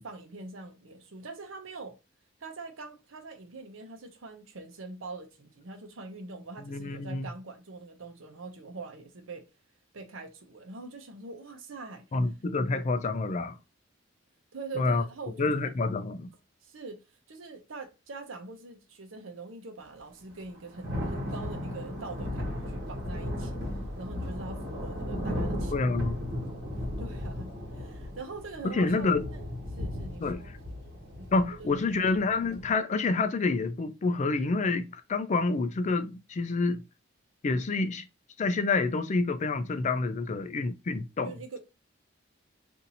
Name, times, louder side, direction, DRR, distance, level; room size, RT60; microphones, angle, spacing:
voice 1, 0.0-2.0 2.4-9.4 9.9-12.0 14.5-15.7 16.6-17.0 17.3-23.6 24.0-25.8 27.0-29.4 29.7-30.5 31.2-31.8 41.2-41.6, right 3 dB, 90° right, 0.8 m, -43 dB
voice 2, 6.6-7.3 12.1-13.6 14.8-15.0 15.4-16.3 25.7-26.2 28.6-29.2 30.2-30.6 31.3-36.8 37.4-38.0 38.4-41.3, left 3 dB, 35° left, 0.4 m, -28 dB
Thunder / Rain, 20.3-32.7, left 1 dB, 55° right, 1.1 m, -36 dB
2.8 x 2.6 x 3.8 m
head